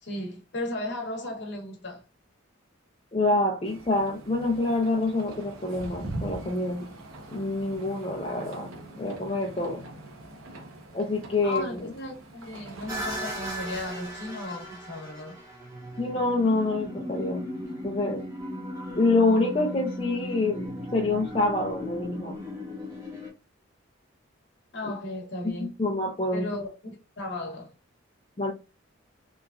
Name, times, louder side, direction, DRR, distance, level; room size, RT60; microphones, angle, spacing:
voice 1, 0.0-2.0 11.4-15.4 24.7-25.7 26.3-27.7, left 2 dB, 55° left, 0.9 m, -35 dB
voice 2, 3.1-6.9 7.3-8.7 9.0-9.8 10.9-11.8 16.0-17.5 17.8-18.2 19.0-22.4 24.8-24.9 25.4-26.5 28.4-28.5, left 2 dB, 25° left, 0.4 m, -26 dB
sound 1, 3.6-13.9, right 1 dB, 85° right, 0.7 m, -42 dB
sound 2, 12.9-23.3, equal, 15° right, 1.0 m, -37 dB
2.9 x 2.4 x 2.3 m
head